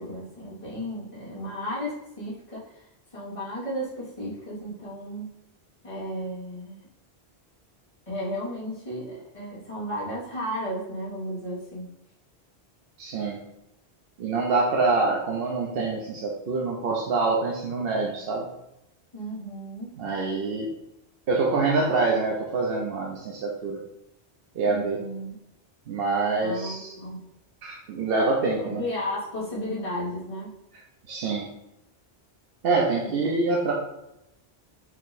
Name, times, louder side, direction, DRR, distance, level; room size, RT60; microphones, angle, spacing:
voice 1, 0.0-2.9 3.1-5.3 5.8-6.8 8.1-11.9 19.1-19.9 24.7-25.4 26.4-27.2 28.6-30.5 33.0-33.1, equal, 30° left, -8 dB, 1.7 m, -34 dB
voice 2, 13.0-13.4 14.2-18.5 20.0-20.7 21.3-23.8 24.5-25.0 25.9-26.9 27.6-28.8 31.1-31.5 32.6-33.7, right 3 dB, 65° right, -2 dB, 0.8 m, -25 dB
4.5 x 2.9 x 4.0 m, 0.86 s
omnidirectional pair, 1.1 m